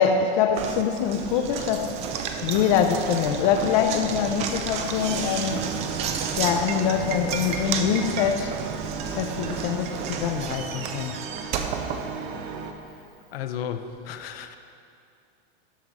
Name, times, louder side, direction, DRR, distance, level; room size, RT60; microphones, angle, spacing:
voice 1, 0.0-1.9 2.4-5.7 6.4-8.5 9.2-11.2, left 7 dB, 40° left, 5 dB, 0.4 m, -24 dB
Knock, 0.6-12.7, right 6 dB, 25° right, 0.4 m, -32 dB
sound 1, 5.5-12.7, right 6 dB, 40° right, 0.7 m, -36 dB
voice 2, 13.3-14.6, left 8 dB, 80° left, 8 dB, 0.7 m, -34 dB
12.5 x 5.0 x 4.0 m, 2.5 s
supercardioid pair, 150°, 29 cm